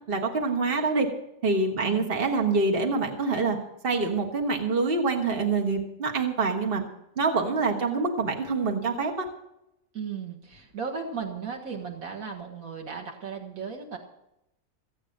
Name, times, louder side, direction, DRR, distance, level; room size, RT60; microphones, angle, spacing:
voice 1, 0.1-1.1 1.4-3.6 3.8-6.8 7.2-9.3, right 3 dB, 45° right, 2 dB, 1.7 m, -26 dB
voice 2, 1.8-2.1 9.9-14.0, right 6 dB, 85° right, 1 dB, 2.0 m, -36 dB
15.5 x 8.7 x 6.5 m, 0.84 s
omnidirectional pair, 1.4 m